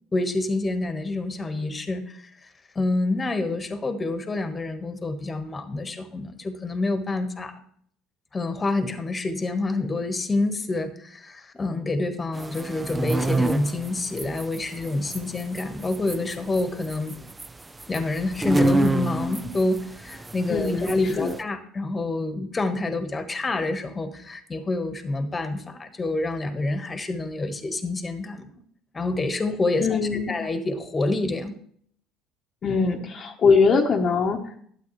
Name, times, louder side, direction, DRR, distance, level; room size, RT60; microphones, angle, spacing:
voice 1, 0.1-2.5 2.7-7.5 8.3-17.1 17.9-28.5 28.9-31.5, left 2 dB, 25° left, 9 dB, 1.4 m, -27 dB
sound 1, 12.3-21.4, right 2 dB, 20° right, 0.6 m, -29 dB
voice 2, 20.5-20.9 21.2-21.3 29.8-30.3 32.6-34.7, left 5 dB, 45° left, 1 dB, 1.1 m, -22 dB
12.5 x 8.0 x 3.2 m, 0.62 s
hypercardioid pair, 65°, 0 cm